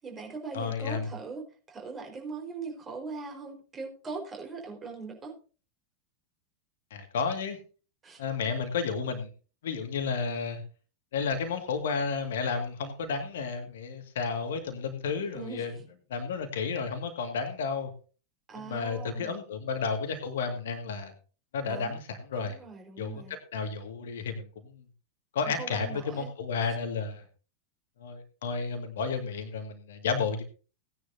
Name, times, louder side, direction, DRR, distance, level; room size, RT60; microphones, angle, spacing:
voice 1, 0.0-5.4 8.0-8.2 15.3-15.8 18.5-19.3 21.6-22.0 22.3-23.4 25.4-26.3, right 4 dB, 20° right, 1 dB, 4.7 m, -41 dB
voice 2, 0.5-1.1 6.9-7.6 8.2-9.3 9.6-10.6 11.1-15.7 16.1-17.9 18.7-21.1 21.5-22.6 23.0-24.5 25.3-27.2 28.0-30.4, left 5 dB, 60° left, 6 dB, 2.1 m, -32 dB
18.0 x 10.0 x 2.8 m, 0.37 s
figure-of-eight pair, 90°, 0 cm